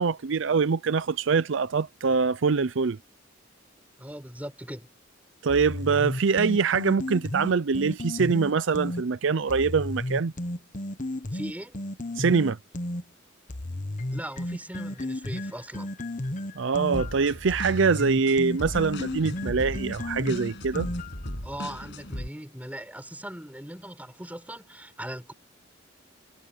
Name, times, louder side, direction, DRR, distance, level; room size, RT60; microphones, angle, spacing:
voice 1, 0.0-3.0 5.4-10.3 12.2-12.6 16.6-20.9, right 5 dB, 65° right, 0.5 m, -24 dB
voice 2, 4.0-4.9 11.3-11.8 14.1-15.9 21.4-25.3, right 1 dB, 10° right, 6.6 m, -39 dB
sound 1, 5.5-9.0 9.5-13.0 13.5-21.3, left 1 dB, 40° left, 1.3 m, -33 dB
sound 2, 16.9-22.3, left 1 dB, 60° left, 8.0 m, -37 dB
head